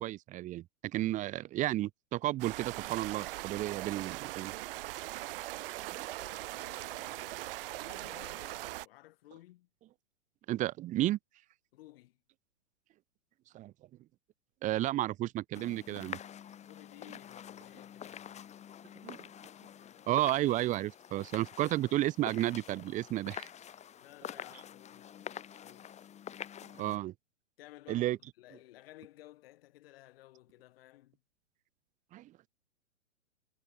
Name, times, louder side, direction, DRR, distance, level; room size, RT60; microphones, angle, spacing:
voice 1, 0.0-4.5 10.5-11.2 13.5-13.7 14.6-16.2 19.0-19.3 20.1-23.5 26.8-27.1 27.9-28.2 32.1-32.5, right 15 dB, 20° right, 1.0 m, -32 dB
sound 1, 2.4-8.9, right 17 dB, 45° right, 3.5 m, -40 dB
voice 2, 5.9-9.7 11.7-12.2 16.6-18.5 19.7-20.2 24.0-25.9 27.6-28.1 28.4-31.2, left 16 dB, 45° left, 5.2 m, -56 dB
sound 2, 15.5-27.0, left 9 dB, 15° left, 3.1 m, -47 dB
hypercardioid pair, 125°, 39 cm